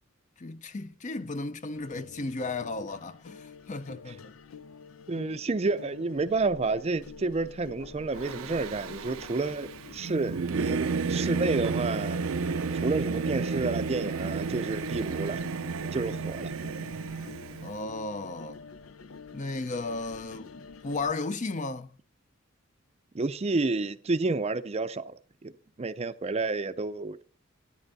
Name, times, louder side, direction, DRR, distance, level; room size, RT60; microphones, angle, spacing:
voice 1, 0.4-4.3 17.6-18.6 19.3-22.0, left 3 dB, 35° left, 0.6 m, -35 dB
sound 1, 1.7-21.1, left 5 dB, 85° left, 0.6 m, -48 dB
voice 2, 5.1-12.2 12.8-15.4 15.9-16.5 23.1-25.5 25.8-27.2, right 3 dB, 30° right, 0.5 m, -30 dB
sound 2, 6.2-9.4, equal, 60° left, 2.1 m, -52 dB
Singing / Musical instrument, 8.2-17.7, right 4 dB, 85° right, 0.5 m, -32 dB
13.5 x 8.9 x 4.1 m
head